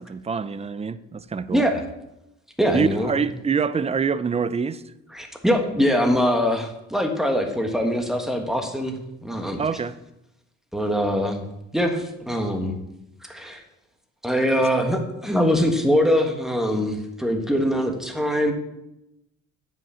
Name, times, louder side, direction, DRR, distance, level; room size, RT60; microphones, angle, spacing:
voice 1, 0.0-1.7 2.7-4.8 9.6-9.9, right 5 dB, 20° right, 0.5 m, -25 dB
voice 2, 1.5-1.8 2.6-3.1 5.1-9.6 10.7-11.4 11.7-12.7 13.2-13.6 14.2-18.5, equal, ahead, 1.5 m, -23 dB
9.1 x 6.2 x 7.0 m
cardioid pair, 120°, 31 cm